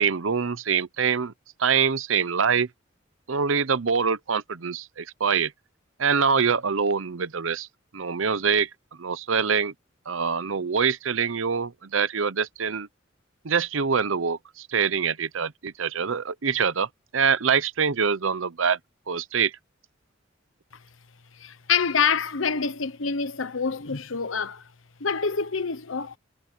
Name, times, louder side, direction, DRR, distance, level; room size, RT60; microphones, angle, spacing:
voice 1, 0.0-1.3 1.6-2.7 3.3-5.5 6.0-7.7 7.9-8.7 9.0-9.7 10.1-12.9 13.4-16.9 17.1-18.8 19.1-19.5, right 6 dB, 85° right, 0.8 m, -24 dB
voice 2, 21.3-24.6 25.0-26.2, left 6 dB, 90° left, 1.1 m, -26 dB
head